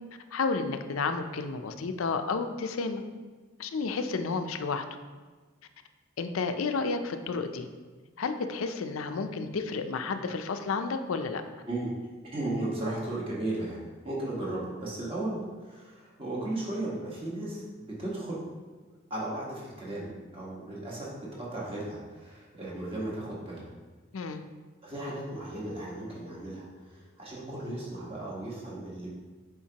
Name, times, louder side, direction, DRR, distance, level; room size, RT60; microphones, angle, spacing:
voice 1, 0.3-3.0 3.6-4.8 6.2-7.7 8.2-11.4 24.1-24.4, left 4 dB, 80° left, 8 dB, 0.5 m, -31 dB
voice 2, 12.3-18.4 19.1-23.6 24.8-29.1, right 1 dB, 25° right, -5 dB, 1.3 m, -35 dB
7.2 x 5.0 x 2.9 m, 1.4 s
head